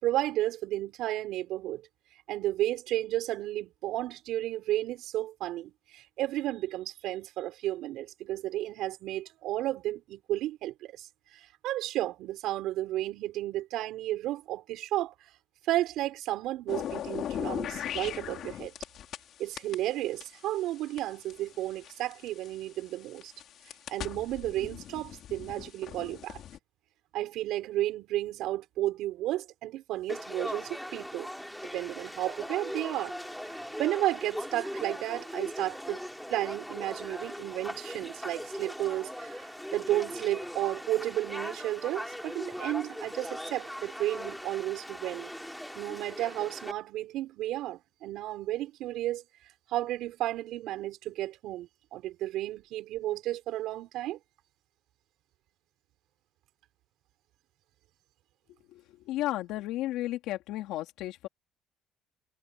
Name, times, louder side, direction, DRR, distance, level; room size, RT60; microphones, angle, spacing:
voice 1, 0.0-1.9 2.3-11.1 11.3-15.3 15.7-18.7 19.4-23.3 23.9-26.4 27.1-31.3 31.7-33.1 33.5-36.0 36.3-45.3 45.8-49.2 49.7-54.2, right 14 dB, 75° right, 5.6 m, -33 dB
sound 1, 16.7-19.2 19.6-22.5 23.1-26.6, left 10 dB, 55° left, 4.4 m, -38 dB
Conversation / Crowd, 30.1-46.7, equal, ahead, 4.5 m, -40 dB
voice 2, 58.7-61.3, left 15 dB, 85° left, 3.4 m, -34 dB
cardioid pair, 140°, 0 cm